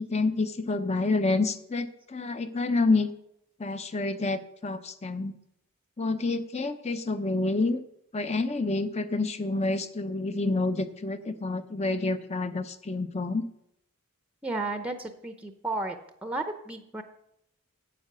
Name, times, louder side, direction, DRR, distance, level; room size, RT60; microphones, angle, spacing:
voice 1, 0.0-3.1 3.6-5.3 6.0-7.8 8.1-13.4, left 3 dB, 30° left, 11 dB, 0.7 m, -28 dB
voice 2, 14.4-16.0 16.2-17.0, right 2 dB, 5° right, 7 dB, 0.7 m, -33 dB
9.9 x 8.2 x 6.7 m, 0.79 s
head